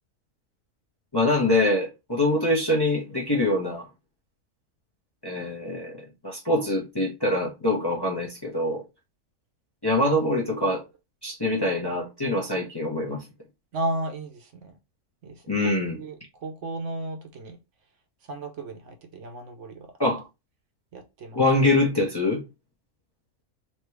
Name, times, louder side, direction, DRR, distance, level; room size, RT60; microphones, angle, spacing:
voice 1, 1.1-3.8 5.2-6.0 6.2-8.8 9.8-10.8 11.2-13.2 15.5-15.9 20.0-20.2 21.3-22.4, left 2 dB, 20° left, 0.8 m, -24 dB
voice 2, 13.7-14.8 15.2-17.6 18.2-19.9 20.9-21.4, right 1 dB, 60° right, 1.0 m, -34 dB
3.4 x 2.9 x 4.5 m
omnidirectional pair, 1.5 m